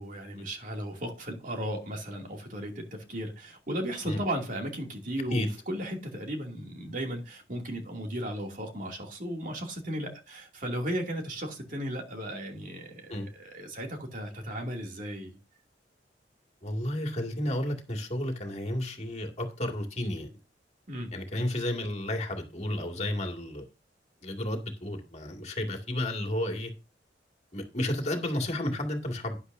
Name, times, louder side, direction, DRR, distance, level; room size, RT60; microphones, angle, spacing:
voice 1, 0.0-15.4 20.9-21.1, equal, 50° right, 2.5 m, -35 dB
voice 2, 16.6-20.3 21.1-23.7 24.2-26.7 27.5-29.4, left 1 dB, 40° left, 2.2 m, -32 dB
11.5 x 10.0 x 2.6 m
head